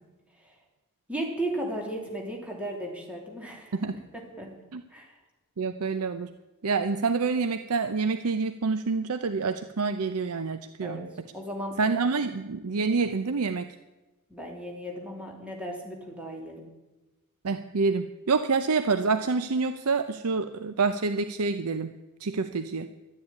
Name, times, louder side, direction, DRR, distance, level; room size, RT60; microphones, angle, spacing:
voice 1, 1.1-3.7 4.1-4.6 4.9-5.1 10.8-11.8 14.3-16.7, right 1 dB, 5° right, -1 dB, 3.1 m, -35 dB
voice 2, 5.6-6.3 6.6-11.1 11.8-13.7 17.4-21.9 22.2-22.9, right 4 dB, 85° right, 9 dB, 0.7 m, -27 dB
12.5 x 9.8 x 9.5 m, 1.1 s
head